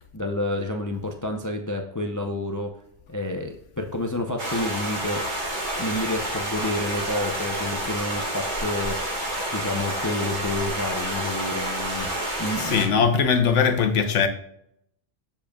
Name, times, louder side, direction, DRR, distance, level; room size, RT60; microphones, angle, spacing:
voice 1, 0.1-2.7 3.1-5.3 5.8-9.2 9.5-12.1 12.4-13.0, left 2 dB, 20° left, 0.6 m, -29 dB
sound 1, 4.4-12.9, right 1 dB, 40° right, 2.0 m, -29 dB
voice 2, 12.6-14.3, left 6 dB, 85° left, 1.2 m, -20 dB
7.5 x 7.0 x 2.3 m
omnidirectional pair, 1.2 m